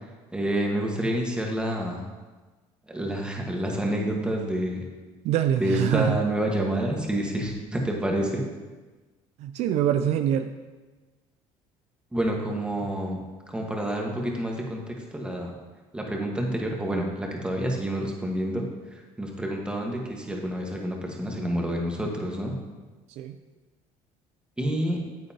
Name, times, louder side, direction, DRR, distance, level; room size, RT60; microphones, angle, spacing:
voice 1, 0.3-2.0 2.9-4.8 5.6-8.4 12.1-13.2 13.5-15.5 15.9-18.7 18.9-22.5 24.6-25.0, right 1 dB, 10° right, 0 dB, 1.5 m, -28 dB
voice 2, 5.2-6.2 9.4-10.5 23.2-23.4, right 10 dB, 70° right, 9 dB, 0.5 m, -24 dB
9.1 x 8.1 x 2.9 m, 1.3 s
cardioid pair, 110°, 12 cm